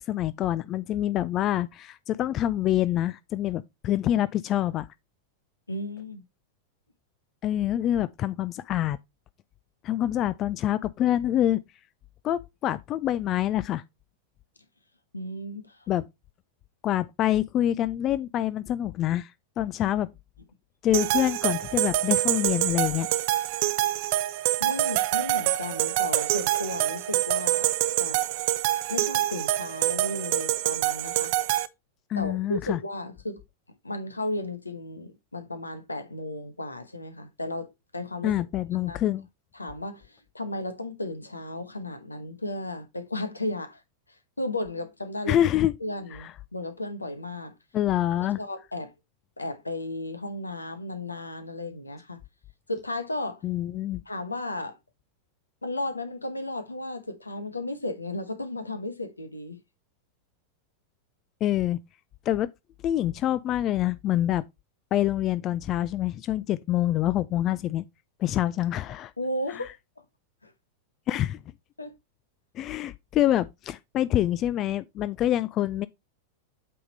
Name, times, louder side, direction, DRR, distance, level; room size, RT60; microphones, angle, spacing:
voice 1, 0.0-4.9 7.4-9.0 9.8-11.6 12.2-13.8 15.9-16.0 16.8-19.3 19.6-20.1 20.8-23.1 32.1-32.8 38.2-39.3 45.3-45.7 46.1-46.3 47.7-48.4 53.4-54.0 61.4-61.8 62.3-62.5 62.8-64.4 64.9-67.8 68.2-69.1 69.5-69.6 71.1-71.4 72.6-75.9, left 12 dB, 35° left, 0.3 m, -26 dB
voice 2, 5.7-6.2 15.1-15.8 24.6-27.7 28.0-28.2 28.9-31.3 32.2-33.4 33.8-38.4 38.8-39.0 39.5-43.8 44.4-45.4 45.8-47.5 48.4-48.9 49.4-52.2 52.7-53.4 54.1-54.8 55.6-59.6 69.2-69.7 70.4-70.5 71.8-71.9, left 1 dB, 80° left, 1.0 m, -34 dB
sound 1, 20.9-31.7, right 15 dB, 50° right, 0.5 m, -26 dB
8.4 x 3.6 x 4.0 m
figure-of-eight pair, 90°, 0 cm